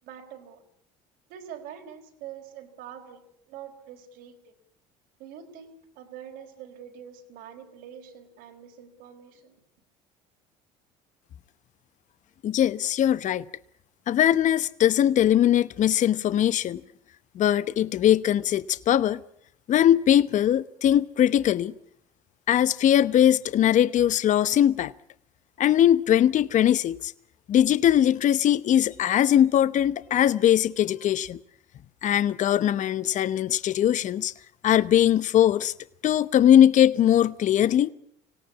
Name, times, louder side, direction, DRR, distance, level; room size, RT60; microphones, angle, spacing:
voice 1, 0.0-0.6 1.3-4.5 5.2-9.5, right 9 dB, 75° right, 4.4 m, -45 dB
voice 2, 12.4-13.5 14.1-16.8 17.3-19.2 19.7-21.7 22.5-24.9 25.6-27.1 27.5-31.4 32.0-34.3 34.6-35.7 36.0-37.9, left 11 dB, 50° left, 0.9 m, -21 dB
25.5 x 17.5 x 8.4 m
supercardioid pair, 75°, 16 cm